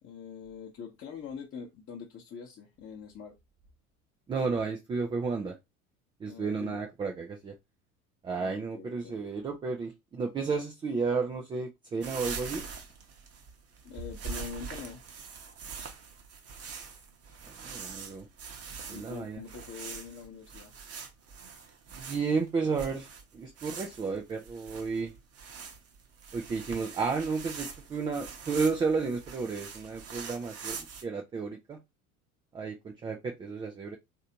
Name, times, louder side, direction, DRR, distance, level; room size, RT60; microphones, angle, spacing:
voice 1, 0.0-3.3 6.2-6.8 8.4-9.2 13.8-15.0 18.9-20.7, left 6 dB, 30° left, 0.8 m, -44 dB
voice 2, 4.3-5.6 6.2-7.5 8.2-12.6 17.6-18.3 18.9-19.4 22.0-23.1 23.3-25.1 26.3-31.8 32.5-34.0, right 4 dB, 15° right, 0.3 m, -32 dB
sound 1, 12.0-31.0, right 5 dB, 35° right, 0.9 m, -43 dB
3.2 x 2.7 x 2.8 m
hypercardioid pair, 80°, 43 cm